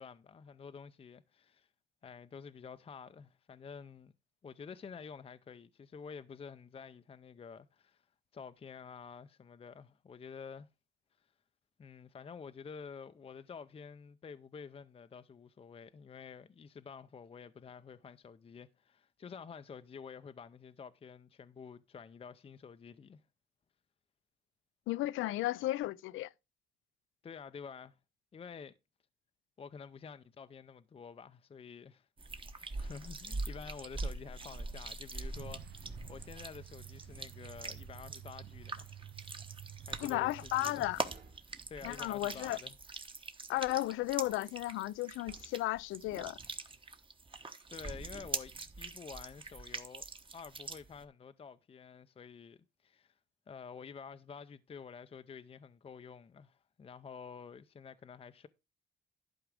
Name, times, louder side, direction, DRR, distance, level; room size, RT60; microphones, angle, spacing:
voice 1, 0.0-1.7 2.0-4.1 4.4-8.0 8.3-10.7 11.8-23.2 27.2-28.0 28.3-28.7 29.6-32.1 32.5-39.0 39.8-40.8 41.7-42.7 47.7-48.5 48.8-50.0 50.3-53.2 53.5-58.5, left 6 dB, 30° left, 0.5 m, -49 dB
voice 2, 24.9-26.3 40.0-41.0 41.8-42.6 43.5-46.4, left 16 dB, 85° left, 0.4 m, -34 dB
sound 1, 32.2-51.0, right 3 dB, 25° right, 1.1 m, -43 dB
Truck, 35.3-40.9, right 11 dB, 60° right, 0.5 m, -51 dB
sound 2, 37.9-38.5 41.1-42.0 45.2-45.9 48.1-48.9, right 3 dB, 45° right, 1.8 m, -59 dB
11.5 x 4.8 x 4.9 m
cardioid pair, 90°, 20 cm